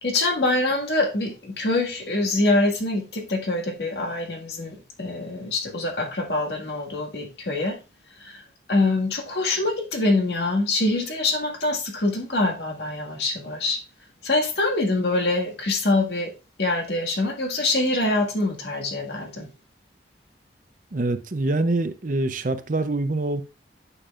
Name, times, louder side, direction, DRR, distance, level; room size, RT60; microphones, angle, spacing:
voice 1, 0.0-7.8 8.2-8.4 8.7-13.8 14.2-16.3 16.6-19.5, left 2 dB, 75° left, 1.8 m, -24 dB
voice 2, 20.9-23.4, right 2 dB, 45° right, 0.6 m, -25 dB
8.9 x 6.7 x 2.4 m
head